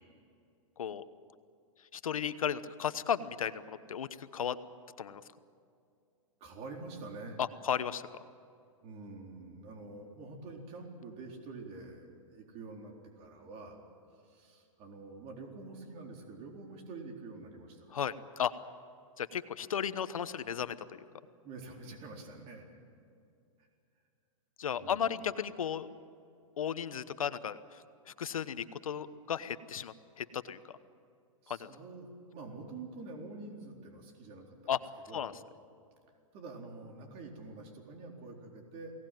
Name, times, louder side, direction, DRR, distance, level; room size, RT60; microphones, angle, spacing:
voice 1, 1.9-4.6 5.0-5.2 7.4-8.1 17.9-18.5 19.2-21.0 24.6-25.9 26.6-30.6 31.5-31.7 34.7-34.8 35.1-35.3, left 8 dB, 90° left, 13 dB, 1.1 m, -35 dB
voice 2, 6.4-7.4 8.8-13.8 14.2-17.9 21.4-22.6 24.7-25.2 31.4-34.7 35.1-35.3 36.3-38.9, right 3 dB, 35° right, 1 dB, 4.0 m, -47 dB
23.0 x 18.0 x 9.3 m, 2.4 s
hypercardioid pair, 135°, 17 cm